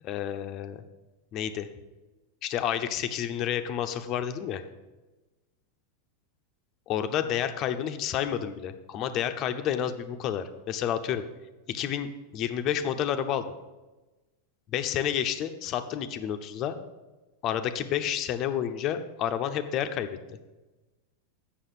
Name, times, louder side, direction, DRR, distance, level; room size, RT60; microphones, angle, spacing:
voice 1, 0.0-0.8 1.3-1.7 2.4-4.6 6.9-11.2 11.7-13.5 14.7-16.8 17.4-20.2, left 9 dB, 45° left, 8 dB, 0.8 m, -30 dB
8.1 x 6.3 x 7.7 m, 1.2 s
hypercardioid pair, 105°, 0 cm